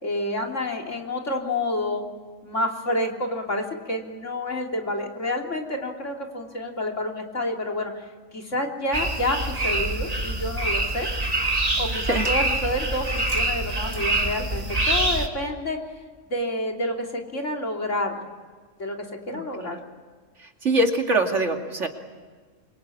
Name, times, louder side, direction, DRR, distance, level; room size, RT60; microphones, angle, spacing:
voice 1, 0.0-2.1 2.4-8.0 8.3-11.1 11.8-15.8 16.3-18.2 18.8-19.8, left 1 dB, 60° left, 1 dB, 3.6 m, -29 dB
sound 1, 8.9-15.3, right 2 dB, 30° right, 2.3 m, -25 dB
voice 2, 20.6-21.9, right 2 dB, 60° right, 3 dB, 2.8 m, -23 dB
27.0 x 24.5 x 8.6 m, 1.5 s
omnidirectional pair, 1.4 m